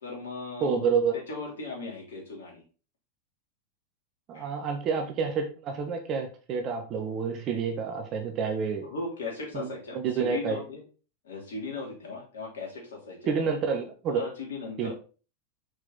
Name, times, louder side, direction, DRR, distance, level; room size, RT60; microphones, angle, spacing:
voice 1, 0.0-0.9 1.1-2.6 4.3-4.5 8.8-10.8 11.2-13.3 14.1-14.9, left 3 dB, 60° left, -1 dB, 3.2 m, -37 dB
voice 2, 0.6-1.1 4.3-8.9 9.5-10.6 13.3-14.2 14.8-14.9, right 6 dB, 35° right, 4 dB, 1.3 m, -29 dB
6.2 x 6.1 x 3.9 m, 0.36 s
figure-of-eight pair, 90°, 0 cm